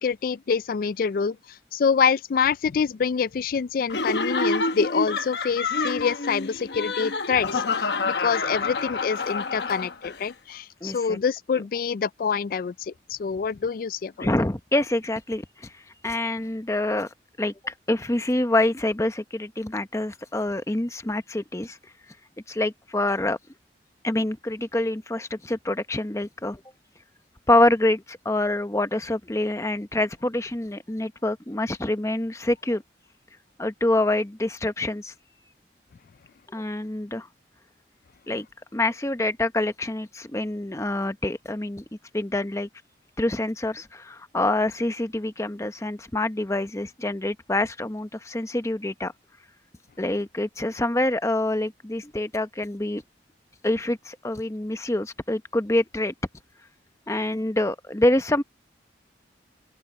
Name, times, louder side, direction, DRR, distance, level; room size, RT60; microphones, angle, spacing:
voice 1, 0.0-1.4 1.7-14.3, left 6 dB, 50° left, 0.3 m, -26 dB
Laughter, 3.9-10.2, left 3 dB, 70° left, 1.1 m, -27 dB
voice 2, 10.8-11.2 14.2-17.1 17.4-21.8 22.5-23.4 24.0-26.6 27.5-32.8 33.6-35.1 36.5-37.3 38.3-38.5 38.7-41.8 42.1-42.7 43.2-49.1 50.0-53.0 53.6-56.1 57.1-58.4, left 1 dB, 15° left, 0.9 m, -26 dB
open air
head